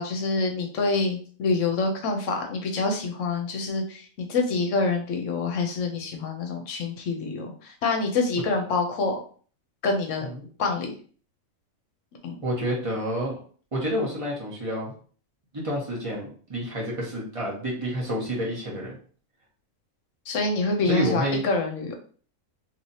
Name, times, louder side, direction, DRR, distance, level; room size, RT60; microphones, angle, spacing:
voice 1, 0.0-9.2 9.8-10.3 10.6-10.9 12.2-12.4 20.3-21.9, left 3 dB, 70° left, 3 dB, 1.0 m, -26 dB
voice 2, 12.4-13.4 13.7-14.9 15.5-19.0 20.8-21.4, equal, 25° right, -4 dB, 1.0 m, -29 dB
3.1 x 2.9 x 2.7 m, 0.43 s
omnidirectional pair, 1.5 m